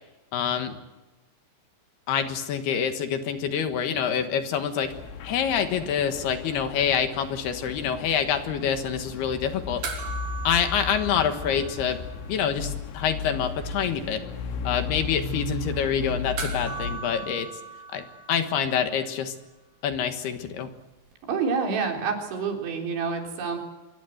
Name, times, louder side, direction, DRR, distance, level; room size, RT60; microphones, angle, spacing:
voice 1, 0.3-0.8 2.1-4.9 5.2-9.8 10.4-12.0 12.3-14.2 14.6-17.5 17.9-19.3 19.8-20.7, left 8 dB, 65° left, 7 dB, 3.3 m, -26 dB
sound 1, 4.8-17.0, left 4 dB, 90° left, 4.8 m, -35 dB
sound 2, 9.8-12.5 12.7-12.8 16.4-19.0 21.1-21.2, right 4 dB, 55° right, 4.9 m, -38 dB
voice 2, 21.3-23.6, right 5 dB, 80° right, 2 dB, 6.2 m, -27 dB
25.0 x 22.5 x 8.0 m, 1.1 s
omnidirectional pair, 5.3 m